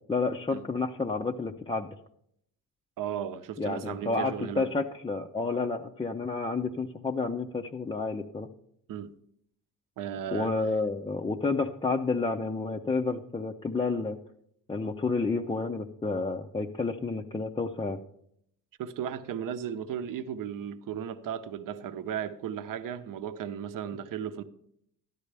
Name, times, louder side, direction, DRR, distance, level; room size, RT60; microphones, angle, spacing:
voice 1, 0.1-1.9 3.6-8.5 10.3-14.2 14.7-18.0, left 3 dB, 15° left, 1 dB, 0.5 m, -30 dB
voice 2, 3.0-4.7 8.9-9.1 10.0-10.5 18.8-24.4, right 9 dB, 55° right, 10 dB, 0.8 m, -35 dB
13.0 x 11.0 x 3.4 m, 0.72 s
cardioid pair, 110°, 39 cm